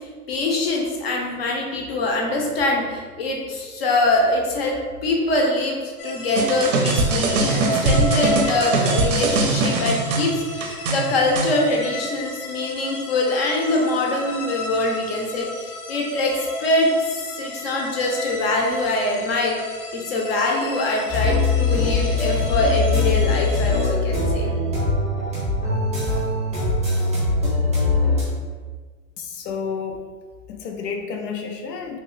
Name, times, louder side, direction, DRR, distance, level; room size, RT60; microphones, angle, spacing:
voice 1, 0.3-4.8 5.0-16.9 17.3-19.6 19.9-24.5, left 2 dB, 40° left, 0 dB, 0.6 m, -23 dB
sound 1, 6.0-23.9, equal, 70° left, 0.9 m, -33 dB
sound 2, 6.4-11.5, right 3 dB, 55° right, 0.5 m, -22 dB
sound 3, 21.1-28.2, left 3 dB, 5° right, 0.5 m, -21 dB
voice 2, 29.2-30.0 30.5-32.0, left 5 dB, 90° left, 3 dB, 0.6 m, -30 dB
3.2 x 2.7 x 3.0 m, 1.5 s
hypercardioid pair, 170°, 47 cm